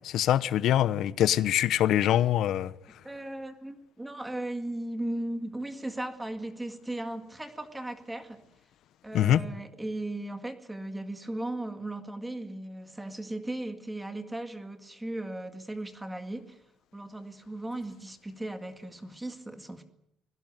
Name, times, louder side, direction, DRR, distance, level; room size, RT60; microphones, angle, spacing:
voice 1, 0.0-2.7 9.1-9.4, left 11 dB, 70° left, 1.0 m, -24 dB
voice 2, 3.0-8.4 9.0-16.6 16.9-19.8, right 1 dB, 10° right, 1.9 m, -37 dB
25.0 x 17.0 x 9.2 m
cardioid pair, 135°, 0 cm